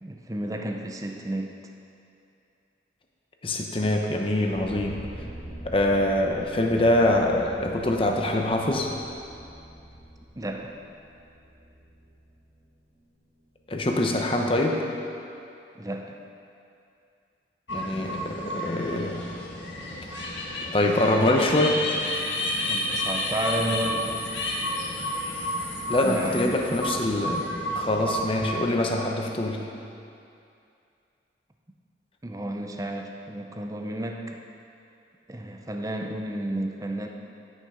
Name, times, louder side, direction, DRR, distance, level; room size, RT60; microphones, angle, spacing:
voice 1, 0.0-1.6 10.4-10.8 15.7-16.2 22.6-24.6 26.0-26.6 32.2-34.4 35.3-37.1, right 1 dB, 20° right, 3 dB, 0.5 m, -32 dB
voice 2, 3.4-5.1 5.6-8.9 13.7-14.8 17.7-19.3 20.7-21.8 25.0-25.1 25.9-29.6, left 1 dB, 30° left, 1 dB, 0.8 m, -24 dB
sound 1, 4.5-13.3, equal, 60° right, 2.7 m, -44 dB
sound 2, 17.7-28.6, left 1 dB, 90° left, 1.4 m, -31 dB
11.5 x 6.6 x 5.0 m, 2.6 s
head